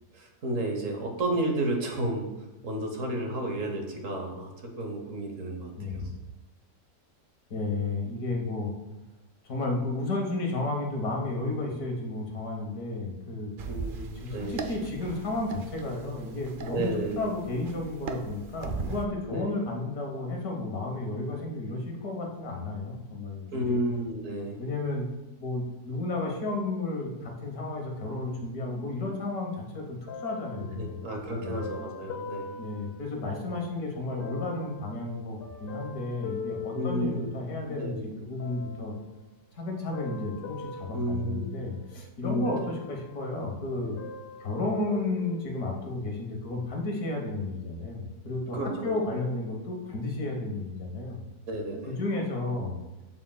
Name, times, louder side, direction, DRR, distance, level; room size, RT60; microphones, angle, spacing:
voice 1, 0.1-2.3 2.6-4.5 4.8-6.1 13.7-14.6 16.7-17.3 19.3-19.5 23.5-24.6 30.8-32.6 36.7-37.3 37.7-38.0 40.9-41.5 42.2-42.5 48.5-49.0 51.5-52.0, right 1 dB, 60° right, 2 dB, 1.4 m, -32 dB
voice 2, 5.8-6.1 7.5-8.7 9.4-13.5 14.2-16.9 17.2-23.8 24.6-25.1 25.4-31.1 31.4-31.6 32.6-38.9 39.5-44.0 44.4-51.2 51.9-52.8, left 2 dB, 80° left, 1 dB, 1.7 m, -32 dB
sound 1, 13.6-19.1, right 5 dB, 75° right, 0.4 m, -39 dB
sound 2, 30.1-33.7 34.2-37.7 38.4-39.1 39.7-42.0 42.4-43.5 43.7-45.8 46.4-46.5, left 5 dB, 55° left, 0.7 m, -42 dB
7.3 x 7.3 x 2.3 m, 1.0 s
omnidirectional pair, 1.6 m